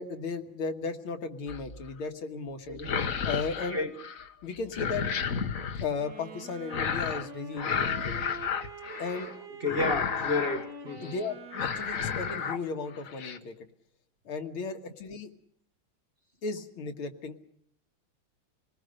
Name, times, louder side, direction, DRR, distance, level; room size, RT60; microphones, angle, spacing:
voice 1, 0.0-2.8 3.2-3.8 4.4-5.1 5.8-8.1 9.0-9.3 11.0-11.3 11.8-13.7 14.3-15.3 16.4-17.4, left 4 dB, 75° left, 6 dB, 2.3 m, -35 dB
sound 1, 1.5-1.9 2.7-4.3 4.5-5.9 6.7-7.3 7.6-9.3 9.7-10.7 11.0-11.2 11.5-12.6 12.9-13.4, left 6 dB, 50° left, 1.3 m, -32 dB
sound 2, 6.0-12.6, right 3 dB, 50° right, 2.3 m, -45 dB
voice 2, 9.6-11.1, left 2 dB, 30° right, 4 dB, 1.4 m, -31 dB
27.0 x 19.5 x 6.6 m, 0.67 s
omnidirectional pair, 2.3 m